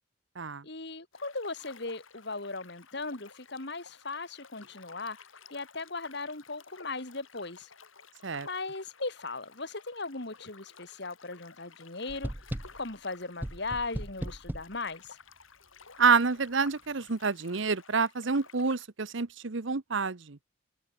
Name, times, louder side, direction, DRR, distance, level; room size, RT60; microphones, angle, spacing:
voice 1, 0.6-5.2 5.5-7.7 8.4-15.2, left 3 dB, 55° left, 2.3 m, -38 dB
sound 1, 1.1-18.9, left 5 dB, 85° left, 7.1 m, -55 dB
sound 2, 12.1-12.9 13.4-14.8, right 1 dB, 10° right, 0.5 m, -37 dB
voice 2, 16.0-20.4, right 5 dB, 65° right, 1.0 m, -28 dB
head